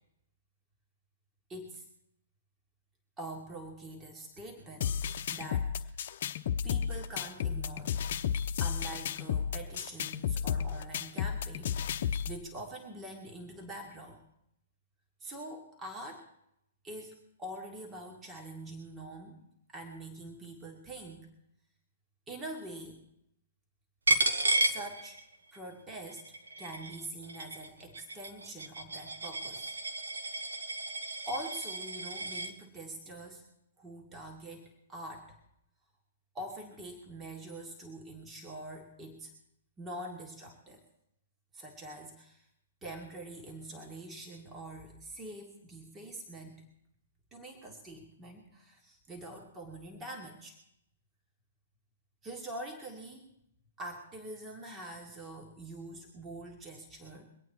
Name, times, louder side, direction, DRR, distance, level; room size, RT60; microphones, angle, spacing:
voice 1, 1.5-1.9 3.2-5.0 5.3-6.0 6.6-8.0 8.6-14.2 15.2-16.3 16.8-21.3 22.3-23.0 24.6-25.2 25.5-29.8 31.3-33.4 33.8-35.4 36.3-39.3 39.8-40.8 41.5-42.5 42.8-46.7 47.3-50.6 52.2-53.2 53.8-57.3, right 1 dB, 15° right, 1 dB, 2.5 m, -44 dB
sound 1, 4.8-12.4, left 8 dB, 60° left, 0.8 m, -33 dB
Coin (dropping), 24.1-25.6 25.9-32.5, right 2 dB, 85° right, 1.4 m, -33 dB
23.5 x 8.8 x 4.7 m, 0.77 s
hypercardioid pair, 130°, 0 cm